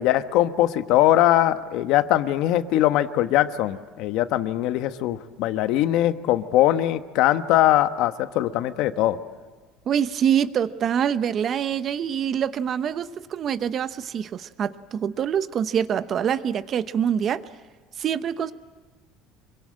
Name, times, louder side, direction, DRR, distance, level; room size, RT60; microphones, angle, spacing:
voice 1, 0.0-9.2, left 13 dB, 60° left, 10 dB, 1.2 m, -21 dB
voice 2, 9.9-17.4 18.0-18.5, right 8 dB, 35° right, 13 dB, 0.9 m, -25 dB
26.5 x 24.0 x 8.8 m, 1.4 s
cardioid pair, 155°, 0 cm